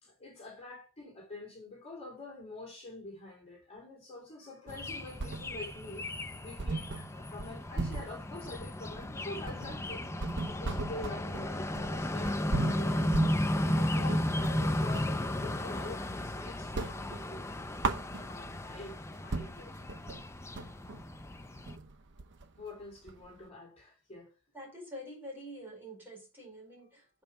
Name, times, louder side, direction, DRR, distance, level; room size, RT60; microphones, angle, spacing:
voice 1, 0.0-6.1 6.4-10.1 10.5-17.5 18.1-20.2 22.6-24.3, left 2 dB, 30° left, 3.0 m, -46 dB
sound 1, 4.7-21.8, left 1 dB, 10° left, 0.5 m, -34 dB
sound 2, 4.7-5.8 6.1-6.2 6.6-15.2 15.6-16.3 16.6-18.6 19.0-19.1 19.3-23.5, right 3 dB, 55° right, 0.8 m, -38 dB
voice 2, 24.5-27.2, equal, 10° right, 4.5 m, -46 dB
8.1 x 5.4 x 5.3 m
head